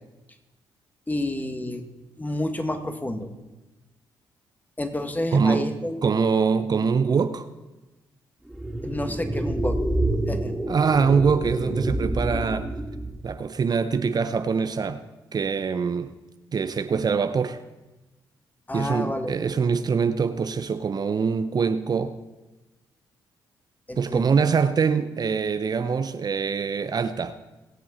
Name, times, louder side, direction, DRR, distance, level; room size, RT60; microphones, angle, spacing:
voice 1, 1.1-1.8 2.2-3.3 4.8-6.0 8.8-9.8 10.3-10.6 18.7-19.5 23.9-24.4, left 1 dB, 20° left, 1.9 m, -29 dB
voice 2, 5.3-5.7 6.0-7.4 10.7-12.7 13.2-15.0 15.3-16.1 16.5-17.6 18.7-22.2 24.0-27.4, right 5 dB, 45° right, 0.8 m, -24 dB
sound 1, 8.5-13.3, right 1 dB, ahead, 2.9 m, -28 dB
22.0 x 7.7 x 4.3 m
supercardioid pair, 60°, 9 cm